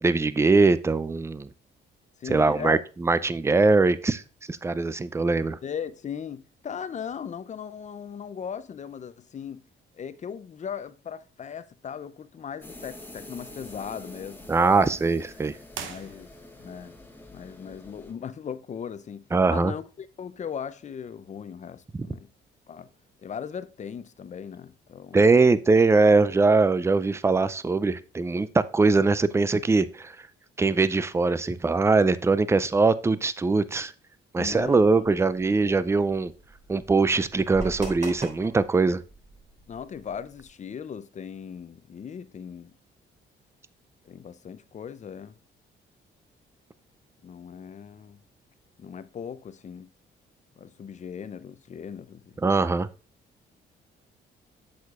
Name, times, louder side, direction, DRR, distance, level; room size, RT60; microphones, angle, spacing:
voice 1, 0.0-1.5 2.3-4.2 4.5-5.6 14.5-15.6 19.3-19.7 21.9-22.1 25.1-30.2 30.6-33.9 34.3-36.3 36.7-39.0 52.4-52.9, right 3 dB, 15° right, 0.4 m, -22 dB
voice 2, 2.2-2.8 5.6-9.6 9.9-15.0 15.8-16.3 16.6-16.9 17.3-22.3 22.7-22.9 23.2-25.3 34.4-35.6 39.7-42.7 44.1-45.4 47.2-48.2 48.8-49.9 50.6-52.3, left 7 dB, 35° left, 0.5 m, -38 dB
sound 1, 12.6-18.1, left 1 dB, 10° left, 1.0 m, -46 dB
sound 2, 15.7-16.7, right 7 dB, 75° right, 0.9 m, -40 dB
sound 3, 34.4-40.5, right 2 dB, 40° right, 3.5 m, -43 dB
8.0 x 6.5 x 2.4 m
cardioid pair, 90°, 20 cm